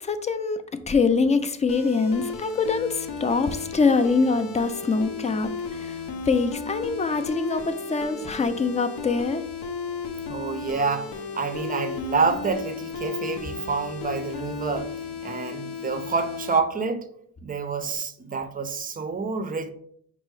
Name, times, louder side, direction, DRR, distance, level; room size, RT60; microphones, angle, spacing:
voice 1, 0.0-6.0 6.3-9.4, left 4 dB, 25° left, 0.4 m, -24 dB
sound 1, 1.7-16.6, left 4 dB, 85° left, 0.7 m, -34 dB
voice 2, 10.3-14.9 15.2-17.0 17.4-19.7, right 4 dB, 30° right, 0.5 m, -28 dB
5.3 x 2.0 x 4.6 m
cardioid pair, 90°, 30 cm